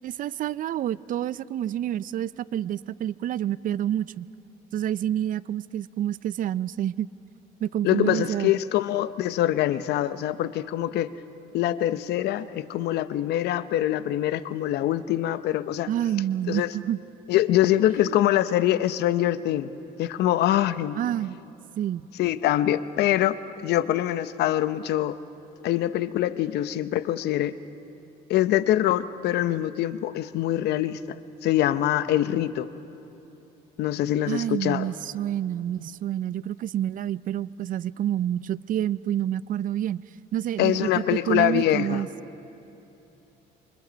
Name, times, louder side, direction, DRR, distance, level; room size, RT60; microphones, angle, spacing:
voice 1, 0.0-4.3 4.7-7.1 7.6-8.5 15.9-17.0 18.0-18.2 20.9-21.4 21.8-22.0 34.3-40.0 40.3-42.1, right 11 dB, 55° right, 19 dB, 0.5 m, -28 dB
voice 2, 7.8-11.1 11.5-15.9 16.5-16.7 17.3-19.7 20.0-21.0 22.2-23.4 23.6-25.2 25.6-27.6 28.3-31.2 31.4-32.7 33.8-34.9 40.6-42.0, left 13 dB, 75° left, 14 dB, 0.8 m, -24 dB
28.0 x 24.5 x 5.2 m, 3.0 s
cardioid pair, 110°, 17 cm